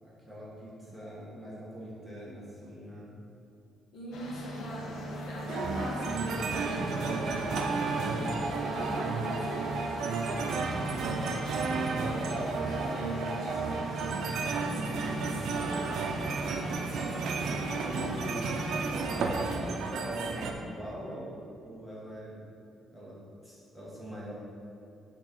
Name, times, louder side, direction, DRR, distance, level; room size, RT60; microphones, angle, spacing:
voice 1, 0.0-3.1 11.9-14.0 14.6-15.7 17.8-22.4 22.9-24.3, equal, ahead, -7 dB, 1.6 m, -42 dB
voice 2, 3.9-9.7 18.6-18.8, equal, 55° left, -5 dB, 1.7 m, -40 dB
sound 1, 4.1-19.1, equal, 80° left, 1.0 m, -40 dB
sound 2, 5.5-20.5, right 4 dB, 65° right, 0.6 m, -32 dB
6.6 x 4.1 x 6.2 m, 2.5 s
cardioid pair, 145°, 0 cm